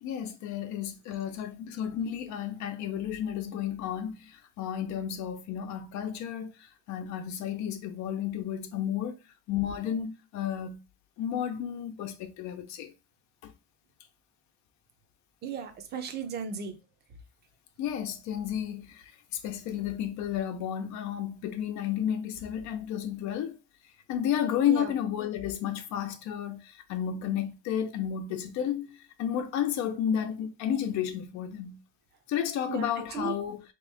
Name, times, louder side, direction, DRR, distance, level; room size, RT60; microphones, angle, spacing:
voice 1, 0.0-4.1 4.6-6.5 6.9-9.2 9.5-10.8 11.2-12.9 13.4-13.5 17.8-19.0 19.4-23.6 24.1-26.6 26.9-31.8 32.3-33.6, left 9 dB, 70° left, 0.7 m, -32 dB
voice 2, 15.4-16.8 24.7-24.9 32.7-33.3, right 6 dB, 35° right, 0.6 m, -35 dB
3.6 x 3.0 x 3.4 m
cardioid pair, 180°, 30 cm